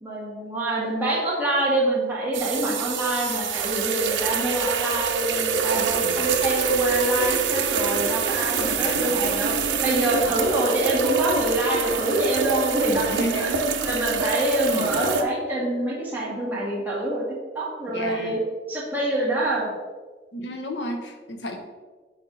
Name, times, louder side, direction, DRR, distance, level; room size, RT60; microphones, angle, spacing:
voice 1, 0.0-13.5 13.8-17.2 17.5-18.4 18.7-19.7, right 1 dB, 10° right, -6 dB, 1.9 m, -25 dB
sound 1, 2.3-15.2, right 5 dB, 85° right, 0.7 m, -26 dB
voice 2, 5.8-6.3 8.8-9.1 12.9-13.8 14.7-15.1 17.9-18.3 20.3-21.6, equal, 70° left, 4 dB, 1.0 m, -33 dB
7.5 x 4.6 x 4.0 m, 1.4 s
head